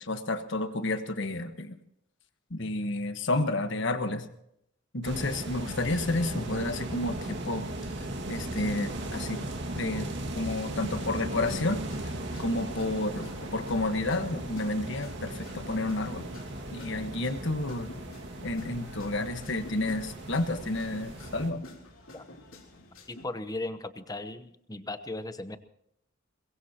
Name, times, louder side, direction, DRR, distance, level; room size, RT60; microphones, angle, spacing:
voice 1, 0.0-1.7 2.5-4.3 4.9-7.6 8.0-9.4 9.7-11.8 12.4-16.3 16.7-17.9 18.4-21.6, left 2 dB, 65° left, 8 dB, 1.4 m, -31 dB
sound 1, 5.0-21.5, right 1 dB, 60° right, 2.0 m, -37 dB
sound 2, 10.6-23.3, left 1 dB, 80° left, 3.3 m, -49 dB
voice 2, 23.1-25.6, left 2 dB, 20° left, 10 dB, 0.9 m, -37 dB
22.5 x 21.5 x 2.9 m, 0.75 s
head